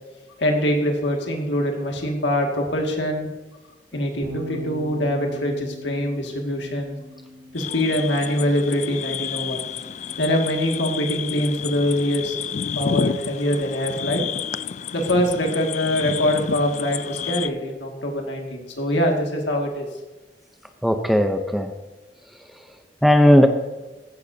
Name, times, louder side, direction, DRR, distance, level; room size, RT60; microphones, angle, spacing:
voice 1, 0.4-3.3 3.9-7.0 7.5-9.7 10.2-12.3 12.8-14.2 14.9-19.9, equal, 75° left, 1 dB, 2.1 m, -23 dB
sound 1, 4.2-10.5, left 1 dB, 85° right, 3.1 m, -40 dB
sound 2, 7.6-17.5, left 7 dB, 40° left, 0.3 m, -30 dB
voice 2, 20.8-21.7 22.4-22.6 23.0-23.5, equal, ahead, 6 dB, 0.7 m, -17 dB
15.5 x 12.0 x 2.8 m, 1.2 s
head